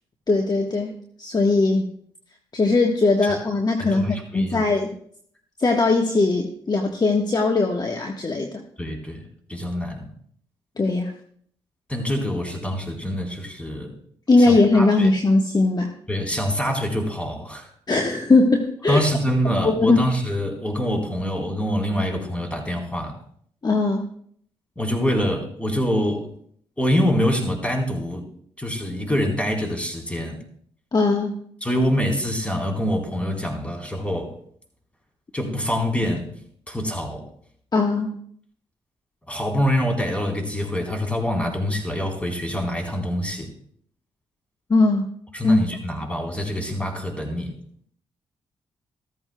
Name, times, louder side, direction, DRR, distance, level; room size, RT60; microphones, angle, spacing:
voice 1, 0.3-1.9 2.5-4.0 4.3-4.9 5.6-8.6 10.8-11.1 14.3-15.9 17.9-19.0 19.6-20.0 23.6-24.1 30.9-31.4 37.7-38.1 44.7-45.1 45.4-45.6, left 3 dB, 35° left, 2 dB, 1.4 m, -19 dB
voice 2, 3.8-4.6 8.8-9.2 9.5-10.1 11.9-13.9 14.4-15.1 16.1-17.7 18.9-23.2 24.8-26.3 26.8-28.3 28.6-30.4 31.6-34.3 35.3-36.3 36.7-37.3 39.3-43.5 45.3-47.6, equal, 10° left, 1 dB, 4.0 m, -25 dB
14.5 x 13.5 x 2.3 m, 0.62 s
hypercardioid pair, 45°, 12 cm